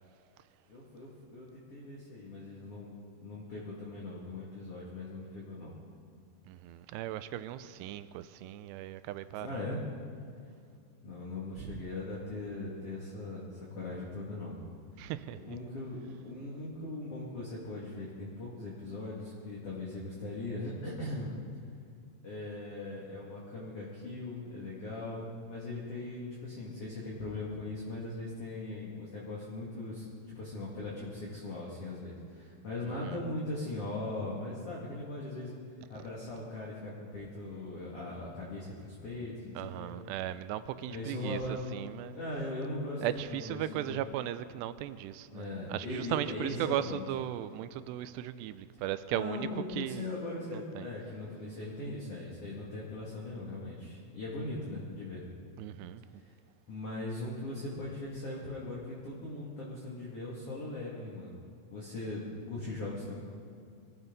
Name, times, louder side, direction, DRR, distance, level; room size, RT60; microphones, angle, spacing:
voice 1, 0.7-5.7 7.6-7.7 9.4-9.8 11.0-14.6 14.9-21.3 22.2-35.5 35.9-40.0 40.9-41.7 42.1-44.0 45.3-47.0 49.1-55.3 56.2-56.3 56.7-61.4 61.7-63.2, left 2 dB, 40° left, 2.7 m, -40 dB
voice 2, 6.5-9.6 11.6-11.8 15.0-15.6 33.0-33.2 39.6-42.2 43.0-50.1 50.5-50.9 55.6-56.0, right 12 dB, 85° right, 2.6 m, -37 dB
23.0 x 14.5 x 4.0 m
omnidirectional pair, 5.0 m